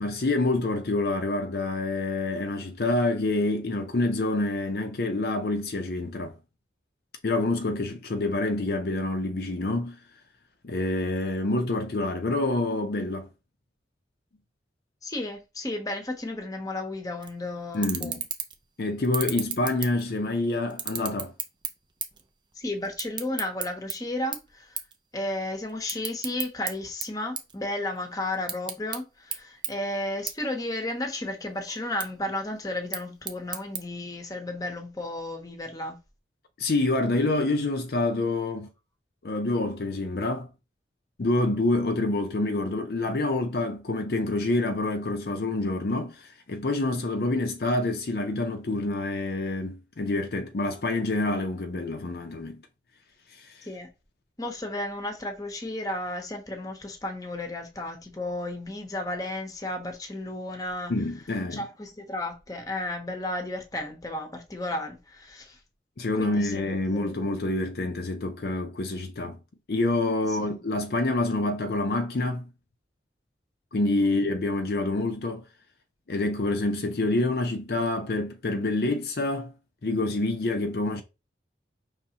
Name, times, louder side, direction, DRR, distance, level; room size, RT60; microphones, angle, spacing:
voice 1, 0.0-6.3 7.2-10.0 10.6-13.3 17.7-18.2 18.8-21.3 36.6-38.7 39.2-40.5 41.2-52.6 53.3-53.7 60.9-61.7 66.0-69.4 69.7-72.5 73.7-75.4 76.1-79.5 79.8-81.0, left 2 dB, 55° left, 0.5 m, -27 dB
voice 2, 15.0-18.2 22.6-24.8 25.1-36.0 53.6-53.9 54.4-60.9 61.5-65.6 66.1-67.3 70.3-70.6 74.0-74.2, left 1 dB, 20° left, 0.8 m, -33 dB
sound 1, 17.2-17.4 17.7-18.6 19.0-20.3 20.7-22.3 22.5-23.9 24.3-24.5 24.8-25.0 25.3-26.7 27.0-28.0 28.3-29.0 29.3-29.4 29.6-29.7 30.3-30.4 30.7-31.3 31.7-32.1 32.7-33.8, right 7 dB, 25° right, 0.5 m, -33 dB
5.4 x 3.2 x 2.8 m
head